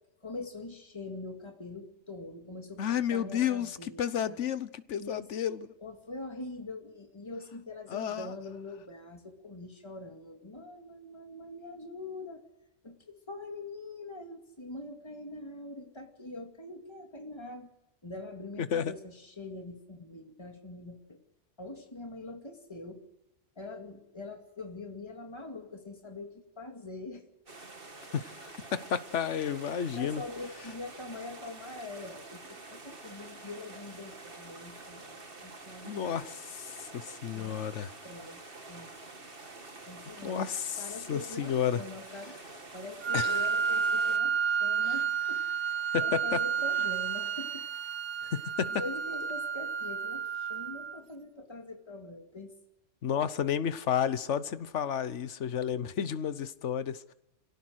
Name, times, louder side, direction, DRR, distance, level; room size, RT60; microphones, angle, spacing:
voice 1, 0.2-4.4 5.0-5.3 5.8-12.4 12.8-17.7 18.0-21.2 21.6-23.0 23.6-27.2 30.0-36.2 37.3-37.7 38.0-38.4 38.7-38.9 39.9-42.4 42.7-47.7 48.7-52.5 55.6-55.7, left 2 dB, 25° left, 2.4 m, -44 dB
voice 2, 2.8-5.7 7.9-8.3 18.6-18.9 28.1-28.3 28.7-30.2 35.8-37.9 40.2-41.8 43.1-43.4 45.9-46.4 48.3-48.8 53.0-57.1, left 8 dB, 75° left, 1.3 m, -31 dB
sound 1, 27.5-44.2, right 3 dB, 50° right, 2.2 m, -48 dB
Wind instrument woodwind instrument, 43.0-51.0, right 7 dB, 75° right, 1.2 m, -31 dB
26.0 x 17.5 x 6.4 m
omnidirectional pair, 1.2 m